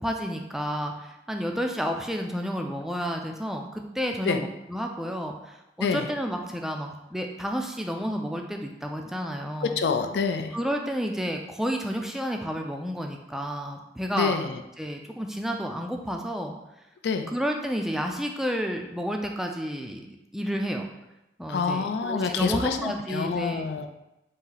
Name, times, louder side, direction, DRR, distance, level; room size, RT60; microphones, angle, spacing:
voice 1, 0.0-9.8 10.5-14.3 14.8-16.5 17.3-20.1 20.3-20.9 21.4-23.7, equal, ahead, 2 dB, 0.3 m, -31 dB
voice 2, 9.6-10.6 14.1-14.6 17.0-17.3 21.5-23.9, left 5 dB, 75° left, 7 dB, 0.4 m, -27 dB
4.2 x 2.7 x 3.9 m, 0.93 s
head